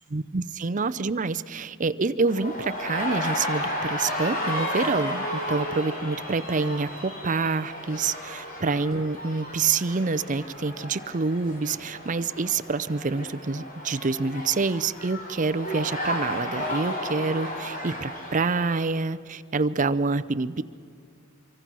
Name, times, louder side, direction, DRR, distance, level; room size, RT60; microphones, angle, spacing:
voice 1, 0.1-20.6, right 4 dB, 35° right, 13 dB, 0.6 m, -27 dB
sound 1, 2.3-18.9, left 1 dB, 40° left, 3.4 m, -33 dB
25.0 x 24.5 x 6.2 m, 2.3 s
head